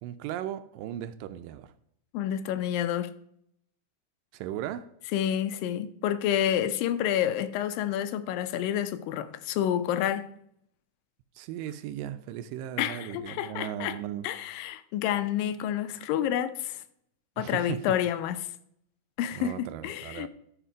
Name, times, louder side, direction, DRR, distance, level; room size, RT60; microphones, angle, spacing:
voice 1, 0.0-1.7 4.3-4.9 11.4-14.3 17.4-18.0 19.3-20.3, right 11 dB, 80° right, 2.1 m, -37 dB
voice 2, 2.1-3.1 5.1-10.3 12.8-14.0 14.2-16.8 17.4-18.5 19.2-20.3, left 10 dB, 80° left, 2.2 m, -29 dB
12.5 x 5.1 x 5.0 m
omnidirectional pair, 4.1 m